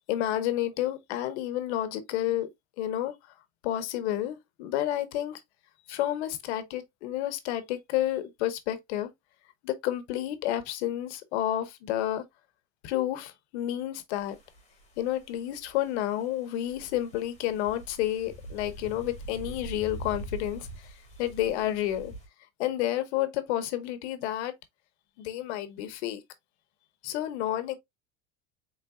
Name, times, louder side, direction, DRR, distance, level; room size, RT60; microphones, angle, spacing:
voice 1, 0.1-2.5 2.8-3.1 3.6-5.4 5.9-9.1 9.6-12.2 12.8-14.4 15.0-20.9 21.2-22.1 22.6-24.5 25.2-26.2 27.0-27.8, left 13 dB, 85° left, 1.0 m, -30 dB
sound 1, 14.1-22.3, right 2 dB, 20° left, 2.2 m, -44 dB
4.6 x 3.7 x 2.4 m
supercardioid pair, 120°, 32 cm